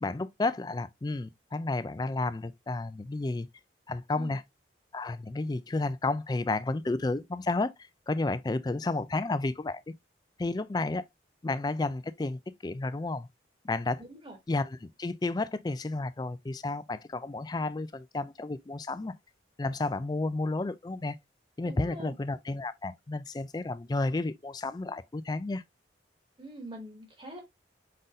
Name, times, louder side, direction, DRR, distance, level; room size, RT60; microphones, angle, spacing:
voice 1, 0.0-3.5 3.9-4.4 4.9-7.7 8.1-9.9 10.4-11.0 11.4-13.3 13.6-14.0 14.5-19.1 19.6-21.2 21.6-25.6, left 2 dB, 20° left, 0.3 m, -31 dB
voice 2, 14.0-14.4 21.6-22.2 26.4-27.4, right 1 dB, 25° right, 1.6 m, -44 dB
5.4 x 3.9 x 2.5 m
head